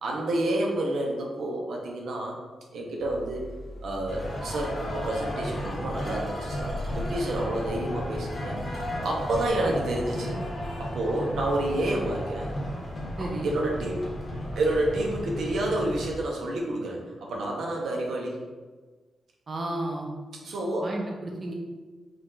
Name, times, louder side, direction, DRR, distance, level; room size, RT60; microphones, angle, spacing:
voice 1, 0.0-2.4 2.7-3.4 3.8-8.6 9.0-10.4 10.8-12.5 13.2-14.0 14.6-18.4 20.4-20.9, right 1 dB, 80° right, -1 dB, 0.8 m, -29 dB
sound 1, 3.0-13.3, equal, 65° left, 0.6 m, -44 dB
sound 2, 4.1-16.1, equal, 30° left, 0.9 m, -34 dB
voice 2, 13.2-13.5 19.5-20.1 20.8-21.5, right 2 dB, 30° right, -1 dB, 0.6 m, -32 dB
4.9 x 2.5 x 3.8 m, 1.3 s
wide cardioid pair, 170°, 0 cm